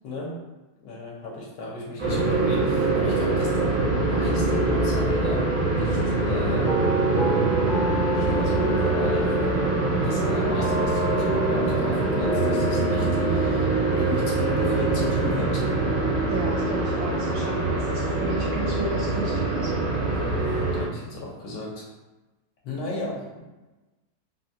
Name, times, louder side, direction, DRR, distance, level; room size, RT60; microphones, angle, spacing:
voice 1, 0.0-0.4 0.8-6.7 8.0-9.4 10.0-15.7 20.1-21.9 22.6-23.4, left 2 dB, 70° left, -3 dB, 1.4 m, -35 dB
sound 1, 2.0-20.9, right 2 dB, 55° right, 0.5 m, -24 dB
sound 2, 4.1-13.5, equal, 40° left, 0.8 m, -31 dB
voice 2, 16.3-19.7 22.7-22.8, right 3 dB, 75° right, -3 dB, 0.8 m, -33 dB
3.7 x 2.2 x 2.7 m, 1.1 s
omnidirectional pair, 2.0 m